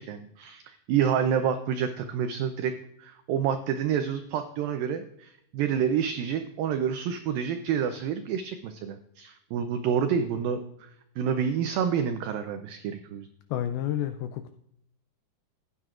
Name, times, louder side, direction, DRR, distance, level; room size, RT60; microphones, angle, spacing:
voice 1, 0.0-2.7 3.0-10.9 11.2-13.3, right 8 dB, 90° right, 8 dB, 2.0 m, -28 dB
voice 2, 13.5-14.5, left 11 dB, 85° left, 8 dB, 2.1 m, -30 dB
15.5 x 9.2 x 2.4 m, 0.76 s
omnidirectional pair, 4.9 m